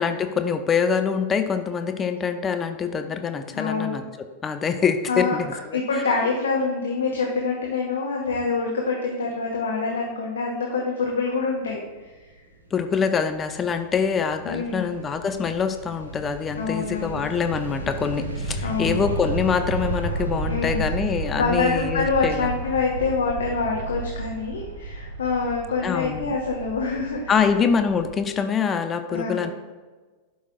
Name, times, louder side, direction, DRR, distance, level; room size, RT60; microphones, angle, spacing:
voice 1, 0.0-4.0 4.4-5.8 12.7-22.5 25.8-26.3 27.3-29.5, left 6 dB, 20° left, 8 dB, 0.5 m, -25 dB
voice 2, 3.5-4.0 5.1-5.4 5.7-11.8 14.5-15.0 16.6-17.3 18.6-19.0 20.5-20.9 21.3-27.5 29.1-29.5, left 4 dB, 65° left, -1 dB, 1.0 m, -26 dB
sound 1, 12.7-28.2, right 2 dB, 75° right, 1.0 m, -33 dB
12.0 x 5.5 x 2.5 m, 1.3 s
figure-of-eight pair, 90°, 0 cm